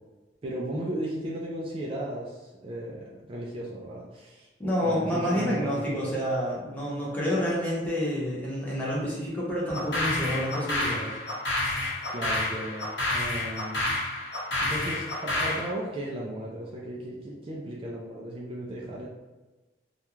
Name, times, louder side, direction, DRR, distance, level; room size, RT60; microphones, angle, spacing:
voice 1, 0.4-4.5 4.8-6.1 11.7-13.9 14.6-19.1, right 1 dB, 30° right, -5 dB, 0.3 m, -36 dB
voice 2, 4.6-11.2, equal, 10° left, -7 dB, 0.8 m, -28 dB
sound 1, 9.7-15.7, left 2 dB, 80° left, 1.0 m, -29 dB
2.3 x 2.2 x 3.0 m, 1.2 s
head